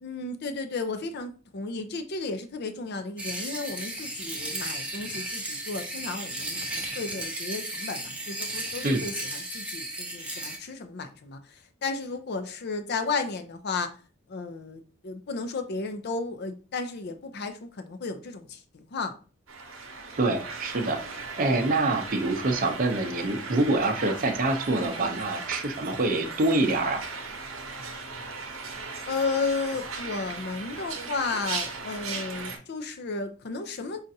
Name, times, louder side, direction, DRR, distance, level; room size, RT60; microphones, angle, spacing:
voice 1, 0.0-13.9 14.3-19.2 24.8-25.2 29.1-34.1, left 4 dB, 55° left, 0.5 m, -33 dB
sound 1, 3.2-10.6, right 1 dB, 5° right, 0.7 m, -35 dB
sound 2, 19.5-32.6, right 4 dB, 75° right, 0.8 m, -37 dB
voice 2, 20.2-21.0 21.4-27.0, right 2 dB, 45° right, 0.6 m, -25 dB
5.2 x 2.4 x 2.7 m
head